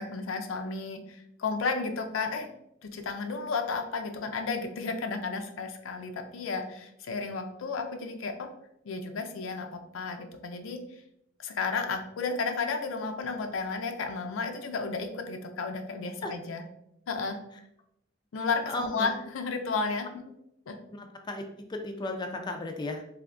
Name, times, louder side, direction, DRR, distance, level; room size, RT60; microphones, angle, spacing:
voice 1, 0.0-2.5 2.8-8.5 8.8-10.8 11.4-16.6 17.1-17.4 18.3-20.1 20.7-20.8, left 4 dB, 85° left, 5 dB, 0.4 m, -33 dB
voice 2, 18.7-19.1 20.9-21.4 21.7-23.0, left 2 dB, 20° left, 4 dB, 0.3 m, -35 dB
3.4 x 2.7 x 2.4 m, 0.79 s
head